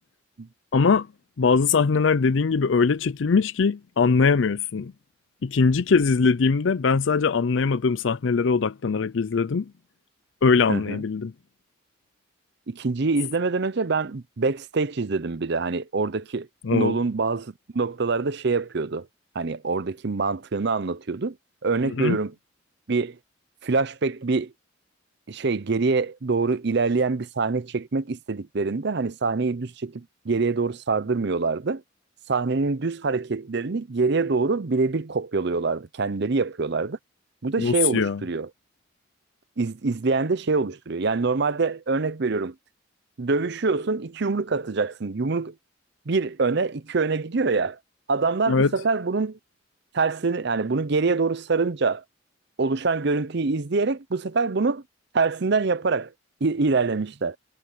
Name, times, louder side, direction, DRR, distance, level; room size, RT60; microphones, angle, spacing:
voice 1, 0.7-1.1 1.4-4.9 5.4-9.7 10.4-11.3 16.6-17.0 22.0-22.2 37.6-38.2 48.5-48.7, left 5 dB, 65° left, 0.5 m, -21 dB
voice 2, 10.7-11.0 12.7-19.1 19.3-21.4 21.6-22.3 22.9-23.2 23.6-24.5 25.3-31.8 32.3-37.0 37.4-38.5 39.6-42.5 43.2-45.6 46.1-47.8 48.1-49.4 49.9-52.0 52.6-54.8 55.1-56.1 56.4-57.4, right 4 dB, 55° right, 0.7 m, -25 dB
head